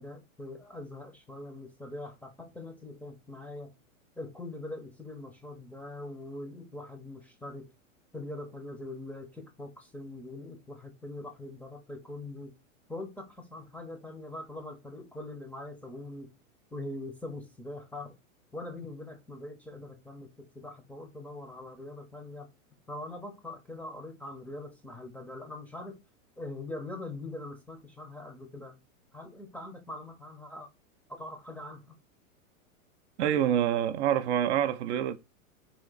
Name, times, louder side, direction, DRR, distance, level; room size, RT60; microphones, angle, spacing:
voice 1, 0.0-3.7 4.2-7.7 8.1-12.5 12.9-16.3 16.7-18.2 18.5-22.5 22.9-26.0 26.4-28.8 29.1-30.7 31.2-31.9, left 2 dB, 5° left, 0.6 m, -42 dB
voice 2, 33.2-35.2, right 10 dB, 55° right, 0.5 m, -26 dB
3.6 x 2.5 x 3.9 m
hypercardioid pair, 115°, 41 cm